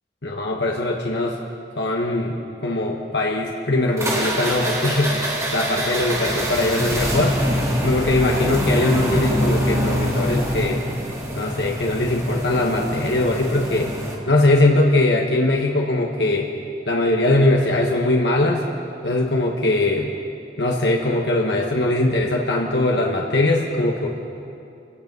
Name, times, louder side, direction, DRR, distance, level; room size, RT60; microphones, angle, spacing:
voice 1, 0.2-1.4 1.8-7.3 7.8-10.8 11.3-13.9 14.3-16.5 16.9-18.6 19.0-20.1 20.6-24.1, left 2 dB, 80° left, -1 dB, 1.6 m, -21 dB
sound 1, 4.0-14.2, equal, 15° right, 2.7 m, -24 dB
28.0 x 17.0 x 5.5 m, 2.7 s
head